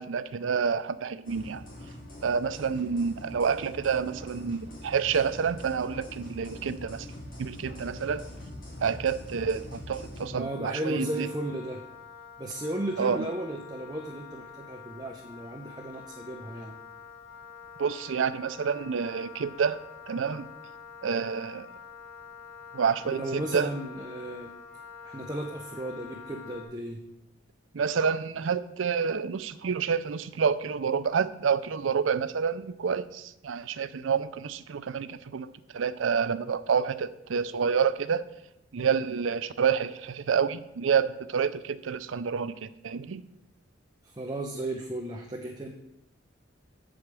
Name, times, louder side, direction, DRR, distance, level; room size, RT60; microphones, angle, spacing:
voice 1, 0.0-1.6 2.2-7.1 7.4-8.2 8.8-11.3 13.0-13.3 17.8-19.8 20.1-20.5 21.0-21.7 22.7-23.7 27.7-38.2 38.7-43.2, right 6 dB, 80° right, 14 dB, 0.5 m, -28 dB
sound 1, 1.2-10.3, left 1 dB, 45° left, 2.5 m, -43 dB
voice 2, 10.3-11.8 12.4-16.8 23.0-24.5 25.0-27.0 44.0-45.7, right 1 dB, 20° right, 2 dB, 0.6 m, -35 dB
Wind instrument woodwind instrument, 10.4-26.6, left 6 dB, 85° left, 2.5 m, -47 dB
8.3 x 5.0 x 6.0 m, 0.86 s
head